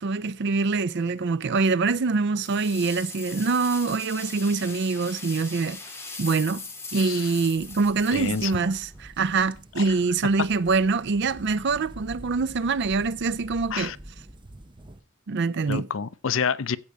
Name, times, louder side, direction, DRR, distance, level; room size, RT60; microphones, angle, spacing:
voice 1, 0.0-5.8 6.2-6.7 6.9-13.9 15.3-15.9, right 4 dB, 60° right, 0.5 m, -24 dB
sound 1, 2.4-9.1, left 3 dB, 15° left, 2.3 m, -40 dB
voice 2, 6.9-7.3 8.1-8.5 9.8-9.9 13.7-14.0 15.7-16.8, left 6 dB, 70° left, 0.6 m, -28 dB
sound 2, 7.6-15.0, right 1 dB, 25° right, 0.9 m, -46 dB
15.5 x 5.3 x 4.7 m
head